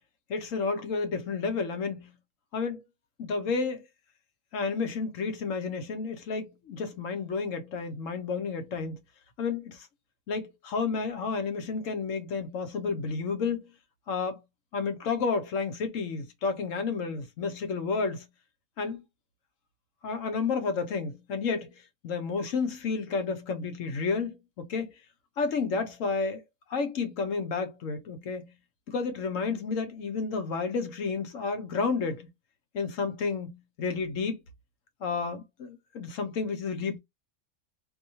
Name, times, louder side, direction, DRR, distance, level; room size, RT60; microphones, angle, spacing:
voice 1, 0.3-2.1 2.5-2.8 3.2-3.9 4.5-9.0 9.4-9.9 10.3-13.7 14.1-14.4 14.7-18.2 18.8-19.0 20.0-21.7 22.0-24.9 25.4-26.4 26.7-28.5 28.9-32.3 32.7-34.4 35.0-37.0, left 4 dB, 70° left, 1.2 m, -31 dB
4.0 x 2.7 x 2.7 m
omnidirectional pair, 1.4 m